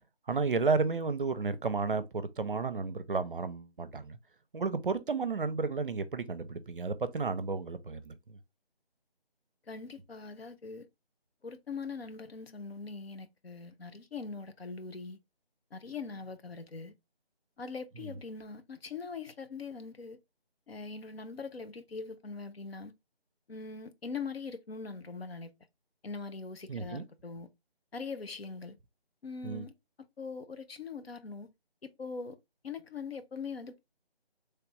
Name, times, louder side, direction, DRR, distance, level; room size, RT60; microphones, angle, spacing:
voice 1, 0.3-4.2 4.5-8.4 18.0-18.2 26.7-27.1 29.4-29.7, right 4 dB, 55° right, 0.5 m, -32 dB
voice 2, 9.7-10.9 11.4-15.2 15.7-16.9 17.6-20.2 20.7-22.9 23.5-25.5 26.0-27.5 27.9-28.8 29.2-29.7 30.2-31.5 31.8-32.4 32.6-33.8, left 4 dB, 75° left, 0.7 m, -42 dB
3.2 x 2.4 x 3.1 m
figure-of-eight pair, 165°, 31 cm